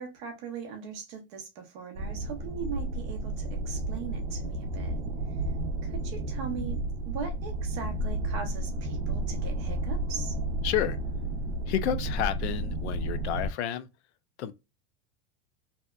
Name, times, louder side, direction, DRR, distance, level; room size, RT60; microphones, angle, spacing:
voice 1, 0.0-5.0 5.8-6.8 7.1-10.4, right 6 dB, 30° right, 0.4 m, -39 dB
sound 1, 2.0-13.5, right 1 dB, 85° right, 0.5 m, -32 dB
voice 2, 10.6-11.0 11.7-13.9 14.4-14.5, left 11 dB, 80° left, 0.5 m, -30 dB
2.8 x 2.1 x 2.2 m
supercardioid pair, 175°, 34 cm